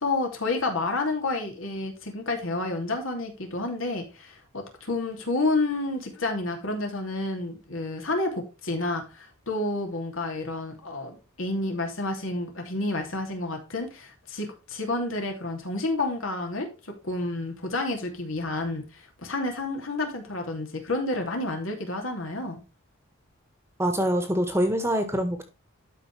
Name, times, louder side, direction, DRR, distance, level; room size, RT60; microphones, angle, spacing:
voice 1, 0.0-16.7 17.0-22.6, left 2 dB, 65° left, 2 dB, 2.9 m, -30 dB
voice 2, 23.8-25.5, equal, 10° right, 7 dB, 1.5 m, -25 dB
12.5 x 5.3 x 3.4 m, 0.29 s
head